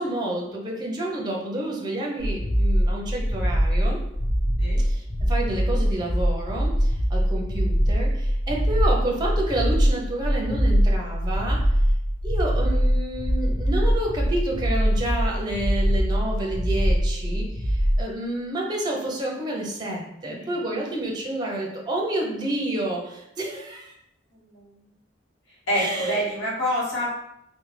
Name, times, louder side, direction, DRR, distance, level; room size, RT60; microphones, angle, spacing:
voice 1, 0.0-4.0 4.8-11.6 12.2-23.9 25.7-26.2, right 1 dB, 20° right, -1 dB, 0.5 m, -29 dB
sound 1, 2.2-18.0, equal, 45° left, 0.7 m, -23 dB
voice 2, 24.3-24.8 25.7-27.1, equal, 90° left, -6 dB, 1.0 m, -27 dB
3.2 x 2.1 x 3.1 m, 0.80 s
head